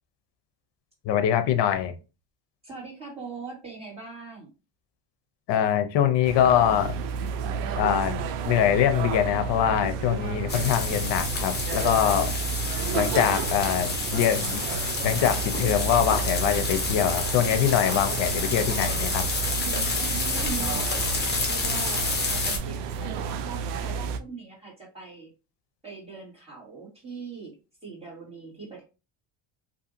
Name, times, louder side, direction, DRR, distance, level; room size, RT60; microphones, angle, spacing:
voice 1, 1.1-1.9 5.5-6.9 7.8-12.3 12.9-14.6 15.0-19.2, left 10 dB, 55° left, 0.6 m, -23 dB
voice 2, 2.6-4.5 20.3-25.3 25.8-27.5 27.8-28.8, right 4 dB, 10° right, 1.6 m, -41 dB
sound 1, 6.2-24.2, right 6 dB, 90° right, 0.6 m, -31 dB
sound 2, 10.5-22.6, left 3 dB, 20° left, 0.7 m, -29 dB
2.7 x 2.6 x 2.5 m
cardioid pair, 120°, 50 cm